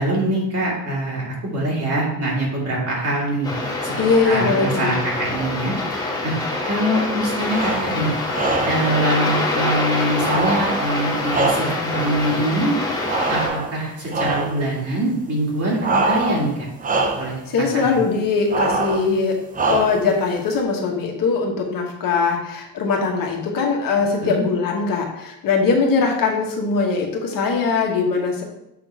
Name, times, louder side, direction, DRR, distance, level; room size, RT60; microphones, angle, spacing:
voice 1, 0.0-3.5 3.8-3.9 4.2-5.7 6.2-6.3 6.6-8.1 8.6-12.7 13.3-16.7 17.2-17.4 17.7-17.8 24.2-24.4, right 1 dB, 40° right, -4 dB, 2.3 m, -23 dB
sound 1, 3.4-13.5, left 2 dB, 10° left, 1.5 m, -25 dB
voice 2, 4.0-4.9 17.5-19.4 19.7-28.4, left 4 dB, 65° left, 1 dB, 1.3 m, -21 dB
sound 2, 7.4-8.0 8.3-8.9 10.2-12.0 13.1-13.8 14.1-14.6 15.8-16.5 16.8-17.4 18.5-19.1 19.5-20.1, right 3 dB, 25° right, 0.6 m, -23 dB
6.9 x 3.7 x 4.7 m, 0.83 s
cardioid pair, 160°, 36 cm